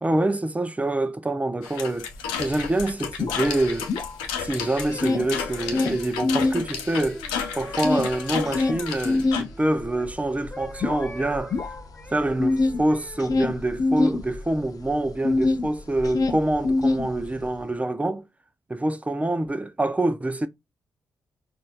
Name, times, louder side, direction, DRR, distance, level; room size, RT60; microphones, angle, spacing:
voice 1, 0.0-2.1 2.4-3.9 4.4-7.2 7.6-11.6 12.1-18.2 18.7-20.5, right 1 dB, 20° right, 0.6 m, -26 dB
sound 1, 1.6-9.4, left 7 dB, 90° left, 0.6 m, -32 dB
sound 2, 2.2-2.3 2.5-4.5 4.8-6.7 7.0-15.7 16.0-17.5, left 3 dB, 50° left, 0.7 m, -25 dB
sound 3, 4.7-10.1 10.5-13.4 14.0-14.3, left 2 dB, 15° left, 0.9 m, -43 dB
4.2 x 2.6 x 2.4 m
hypercardioid pair, 45°, 8 cm